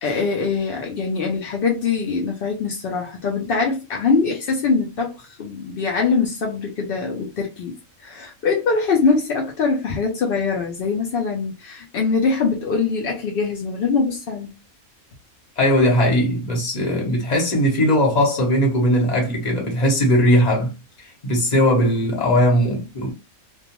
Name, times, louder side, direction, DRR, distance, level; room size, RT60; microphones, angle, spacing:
voice 1, 0.0-14.5, left 4 dB, 70° left, 0.5 m, -23 dB
voice 2, 15.6-20.7 21.2-23.1, equal, 35° left, 0.9 m, -19 dB
2.3 x 2.2 x 2.8 m
omnidirectional pair, 1.5 m